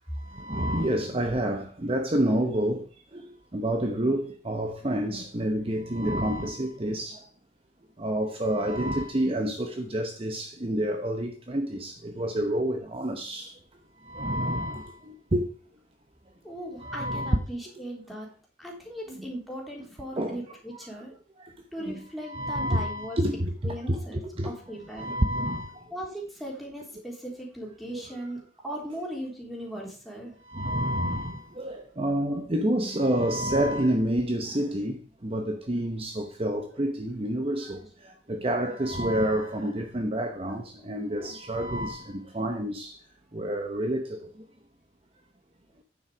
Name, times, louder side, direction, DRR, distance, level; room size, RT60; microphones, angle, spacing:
voice 1, 0.3-2.8 3.1-7.2 8.0-13.5 14.1-14.9 15.3-15.5 16.8-17.4 19.1-19.2 20.2-20.4 21.9-24.5 25.0-25.8 27.9-28.0 30.5-35.0 35.2-37.8 38.3-43.0 43.3-44.2, right 1 dB, 30° right, 0.9 m, -28 dB
voice 2, 16.4-18.3 18.6-21.2 21.7-23.2 23.6-25.2 25.9-30.3 32.3-32.5 35.6-35.7 38.8-38.9 39.4-39.5 40.4-40.6, equal, ahead, 3.5 m, -38 dB
9.4 x 7.2 x 5.0 m
head